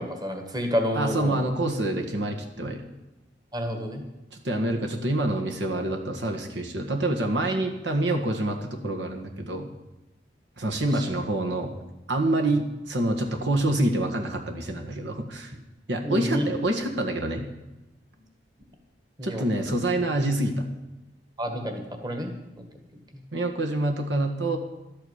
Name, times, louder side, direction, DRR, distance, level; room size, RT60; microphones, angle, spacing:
voice 1, 0.0-1.4 3.5-4.0 10.9-11.1 16.0-16.4 19.2-19.7 21.4-22.3, equal, 25° right, 5 dB, 1.7 m, -29 dB
voice 2, 0.9-2.8 4.3-9.7 10.6-11.7 12.1-15.5 15.9-17.5 19.2-20.7 23.3-24.6, right 1 dB, 75° right, 3 dB, 1.7 m, -26 dB
12.0 x 8.6 x 8.2 m, 1.0 s
head